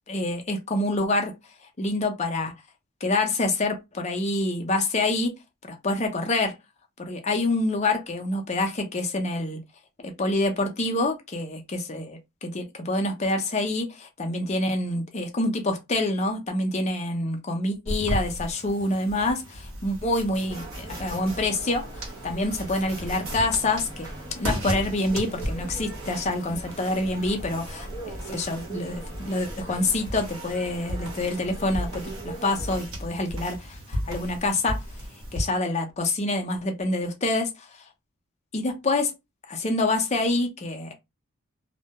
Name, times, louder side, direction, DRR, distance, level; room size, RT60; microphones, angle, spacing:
voice 1, 0.1-1.3 1.8-2.5 3.0-5.3 5.6-6.6 7.0-9.6 10.0-24.1 24.4-34.8 35.3-37.8 38.5-39.1 39.5-40.9, left 2 dB, 30° left, 0.5 m, -27 dB
sound 1, 17.8-35.4, equal, 65° right, 0.9 m, -35 dB
sound 2, 20.5-32.8, right 2 dB, 15° right, 0.6 m, -41 dB
2.2 x 2.1 x 2.8 m
head